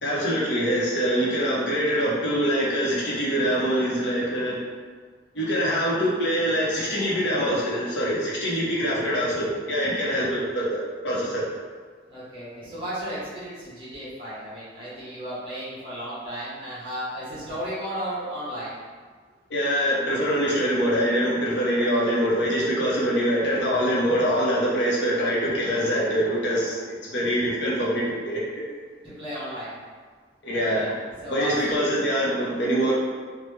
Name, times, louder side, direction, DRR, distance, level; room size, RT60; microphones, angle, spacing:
voice 1, 0.0-4.6 5.3-11.4 19.5-28.4 30.4-31.0 31.3-32.9, equal, 80° left, -5 dB, 0.8 m, -24 dB
voice 2, 12.1-18.8 27.4-27.5 29.0-29.8 30.5-30.9 31.2-31.8, equal, 30° right, -9 dB, 1.1 m, -34 dB
3.1 x 2.2 x 3.1 m, 1.5 s
head